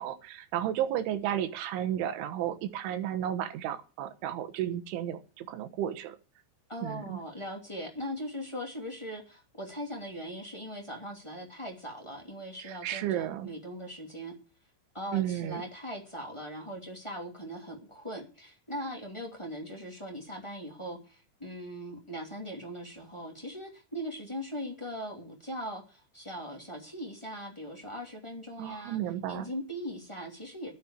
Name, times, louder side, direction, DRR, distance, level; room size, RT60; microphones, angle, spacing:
voice 1, 0.0-6.2 6.8-7.2 12.6-13.5 15.1-15.6 28.6-29.5, right 11 dB, 85° right, 10 dB, 3.7 m, -33 dB
voice 2, 6.7-14.3 14.9-29.0 29.3-30.7, equal, 15° left, 1 dB, 1.1 m, -40 dB
12.0 x 9.5 x 7.3 m, 0.34 s
omnidirectional pair, 5.4 m